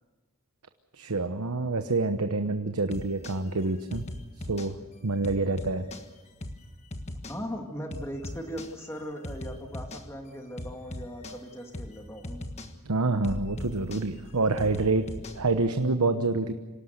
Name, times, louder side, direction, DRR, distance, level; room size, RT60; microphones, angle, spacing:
voice 1, 0.9-4.1 4.4-5.9 12.8-15.1 15.3-16.5, right 3 dB, 85° right, 7 dB, 1.0 m, -27 dB
sound 1, 2.9-3.4 3.9-4.7 5.2-6.0 6.4-6.6 6.9-7.4 7.9-8.7 9.2-10.0 10.6-11.4 11.7-12.0 12.2-12.7 13.2-15.4, left 1 dB, 30° left, 1.5 m, -39 dB
voice 2, 7.3-12.4, equal, 10° left, 3 dB, 2.2 m, -38 dB
26.5 x 18.0 x 7.9 m, 1.3 s
head